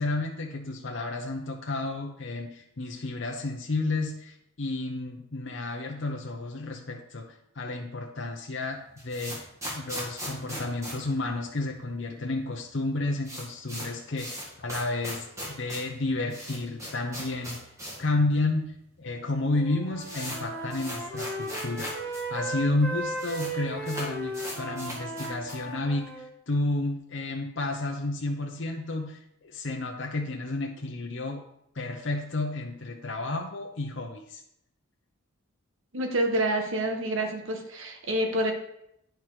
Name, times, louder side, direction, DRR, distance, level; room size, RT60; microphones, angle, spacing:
voice 1, 0.0-9.5 9.7-17.6 18.0-31.4 31.7-34.4, left 2 dB, 60° left, 1 dB, 0.7 m, -31 dB
sound 1, 8.7-12.0 12.2-12.3 12.5-12.6 12.9-18.1 18.4-18.5 19.2-19.3 19.5-22.2 22.5-22.6 22.8-23.5 23.8-25.7, equal, 15° right, 1.8 m, -39 dB
Wind instrument woodwind instrument, 19.5-26.3, right 2 dB, 45° right, 2.0 m, -36 dB
voice 2, 35.9-38.5, right 1 dB, 65° right, 4 dB, 1.2 m, -27 dB
9.0 x 4.6 x 4.8 m, 0.77 s
head